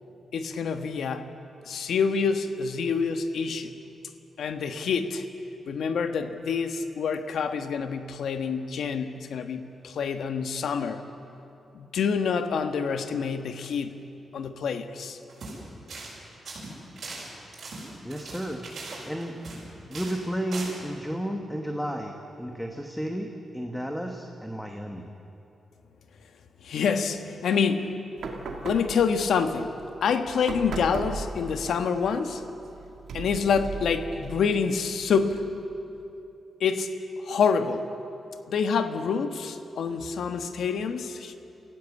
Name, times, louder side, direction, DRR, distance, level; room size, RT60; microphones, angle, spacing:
voice 1, 0.3-1.2 1.7-3.7 4.4-5.2 5.7-11.0 11.7-14.0 14.3-15.2 26.6-28.1 28.6-29.8 30.0-32.4 33.1-35.6 36.6-36.9 37.2-37.9 38.5-41.3, left 6 dB, 75° left, 8 dB, 1.3 m, -27 dB
sound 1, 15.3-15.6 15.9-16.2 16.5-19.6 19.9-20.2 20.5-20.8, right 3 dB, 50° right, 6.8 m, -39 dB
voice 2, 18.0-18.6 19.0-19.4 19.9-25.1, equal, ahead, 3 dB, 1.2 m, -32 dB
sound 2, 28.2-35.6, right 4 dB, 65° right, 2.4 m, -39 dB
28.5 x 15.5 x 8.3 m, 2.8 s
wide cardioid pair, 165°, 0 cm